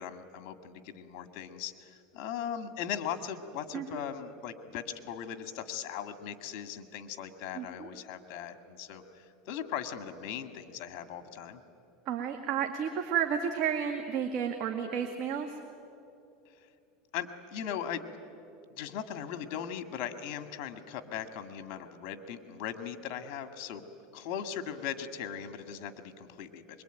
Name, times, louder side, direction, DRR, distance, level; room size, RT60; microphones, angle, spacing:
voice 1, 0.0-11.6 17.1-18.0 18.7-23.9 24.1-26.8, left 9 dB, 55° left, 9 dB, 1.9 m, -39 dB
voice 2, 7.6-7.9 12.1-15.5, right 8 dB, 50° right, 4 dB, 2.0 m, -32 dB
24.5 x 22.0 x 9.2 m, 2.7 s
supercardioid pair, 120°, 0 cm